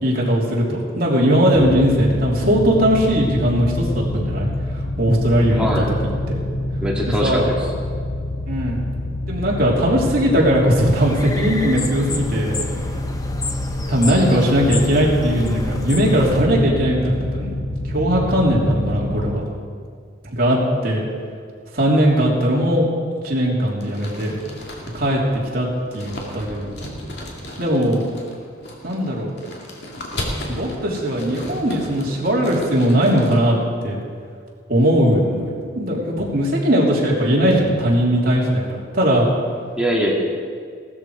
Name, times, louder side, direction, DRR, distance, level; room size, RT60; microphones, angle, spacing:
voice 1, 0.0-4.5 5.0-5.8 6.3-6.4 7.2-7.5 8.5-8.8 9.3-12.5 13.9-19.4 20.2-20.6 20.8-21.0 21.7-22.8 23.2-24.4 24.9-25.2 25.5-25.7 25.9-26.7 27.6-28.0 28.8-29.3 30.5-33.6 33.8-34.0 34.7-39.3, equal, 45° right, -4 dB, 3.2 m, -19 dB
sound 1, 1.5-19.3, left 1 dB, 75° left, 1.9 m, -26 dB
voice 2, 5.5-5.9 6.8-7.7 39.8-40.1, equal, 5° right, -3 dB, 2.0 m, -22 dB
sound 2, 10.8-16.4, left 2 dB, 15° left, 0.9 m, -31 dB
sound 3, 23.8-33.4, left 1 dB, 55° left, 2.4 m, -35 dB
17.0 x 13.0 x 4.9 m, 2.1 s
head